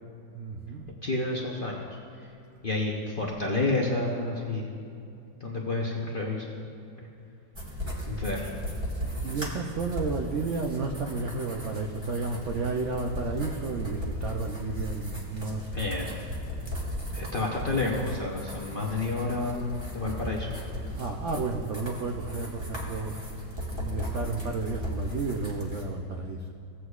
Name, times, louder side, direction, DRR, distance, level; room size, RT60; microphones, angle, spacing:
voice 1, 0.3-0.9 9.2-15.7 16.0-16.1 20.9-23.1 23.7-26.5, right 3 dB, 80° right, 2 dB, 0.6 m, -32 dB
voice 2, 1.0-1.8 2.6-4.7 5.4-6.5 8.1-8.5 15.7-16.1 17.1-19.7 19.9-20.6, left 2 dB, 50° left, -2 dB, 0.6 m, -29 dB
sound 1, 7.5-25.8, equal, 15° right, 1.3 m, -36 dB
17.0 x 7.9 x 2.4 m, 2.6 s
omnidirectional pair, 2.0 m